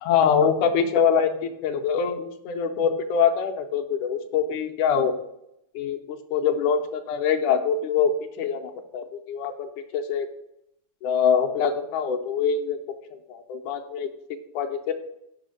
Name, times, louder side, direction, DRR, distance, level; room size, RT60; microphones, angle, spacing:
voice 1, 0.0-5.2 5.7-8.1 8.4-10.3 11.0-12.8 13.1-14.1 14.5-14.9, left 7 dB, 75° left, 5 dB, 2.1 m, -24 dB
6.3 x 5.9 x 6.4 m, 0.80 s
omnidirectional pair, 3.7 m